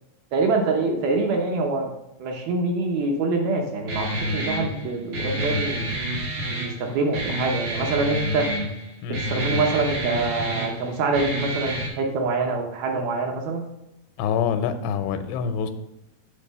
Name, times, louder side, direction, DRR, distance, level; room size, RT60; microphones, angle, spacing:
voice 1, 0.3-1.9 2.2-5.9 6.5-8.4 9.3-13.7, right 3 dB, 75° right, 1 dB, 2.5 m, -25 dB
Guitar, 3.9-11.9, equal, 90° right, 1.2 m, -28 dB
voice 2, 14.2-15.7, left 7 dB, 80° left, 9 dB, 2.7 m, -25 dB
7.5 x 3.8 x 6.6 m, 0.85 s
omnidirectional pair, 4.9 m